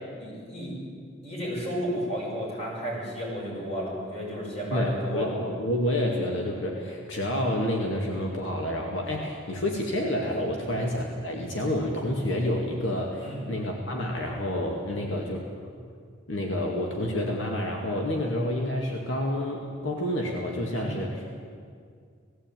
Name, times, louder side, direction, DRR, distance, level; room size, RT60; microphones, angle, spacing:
voice 1, 0.2-0.7 1.2-5.3 6.8-6.9 10.5-10.7 13.2-13.4 14.9-15.0 20.7-21.0, equal, 35° left, -4 dB, 7.5 m, -33 dB
voice 2, 4.7-15.4 15.8-15.9 16.3-21.4, left 1 dB, 80° left, 0 dB, 2.2 m, -29 dB
18.5 x 15.5 x 9.2 m, 2.1 s
head